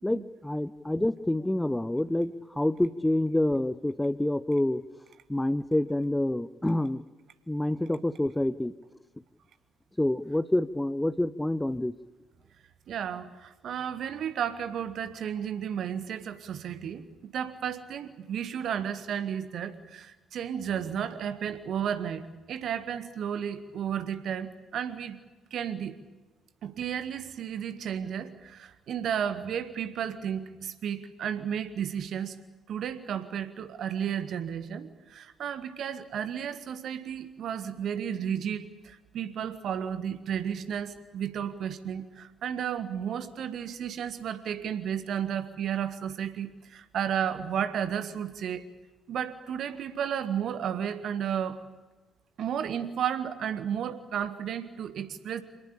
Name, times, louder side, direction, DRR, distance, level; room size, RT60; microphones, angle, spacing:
voice 1, 0.0-4.8 5.3-7.0 7.5-8.7 10.0-11.9, left 1 dB, 10° left, 17 dB, 0.7 m, -27 dB
voice 2, 12.9-25.2 25.5-26.0 26.6-32.4 32.7-48.6 49.1-51.6 52.4-55.4, right 8 dB, 55° right, 11 dB, 1.7 m, -33 dB
26.5 x 18.5 x 8.6 m, 1.2 s
figure-of-eight pair, 45°, 0 cm